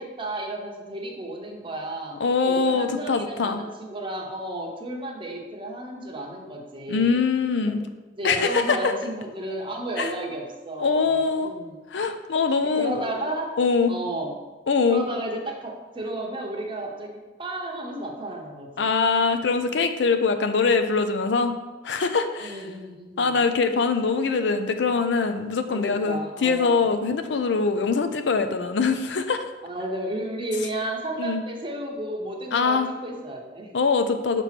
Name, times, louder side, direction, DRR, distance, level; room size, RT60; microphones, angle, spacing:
voice 1, 0.0-2.2 2.4-7.1 7.7-7.8 8.2-11.8 12.7-13.6 13.9-14.4 14.9-18.9 22.4-23.4 25.7-26.9 29.6-33.7, right 1 dB, 30° right, 0 dB, 0.9 m, -33 dB
voice 2, 2.2-3.6 6.9-7.8 8.2-8.9 10.0-10.1 10.8-11.5 11.9-13.0 13.6-13.9 14.7-15.0 18.8-21.5 21.8-22.6 23.2-29.4 31.2-31.4 32.5-32.9 33.7-34.4, left 4 dB, 75° left, 8 dB, 0.5 m, -23 dB
6.7 x 3.0 x 5.8 m, 1.2 s
head